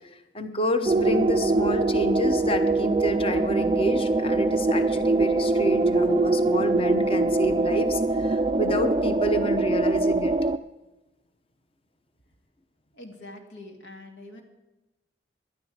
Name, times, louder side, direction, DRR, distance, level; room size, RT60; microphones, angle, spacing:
voice 1, 0.3-10.3, equal, 30° left, 8 dB, 0.9 m, -29 dB
sound 1, 0.8-10.6, right 2 dB, 25° right, 0.4 m, -23 dB
voice 2, 12.9-14.4, left 1 dB, 85° left, 3 dB, 2.4 m, -44 dB
17.0 x 11.5 x 4.9 m, 1.0 s
head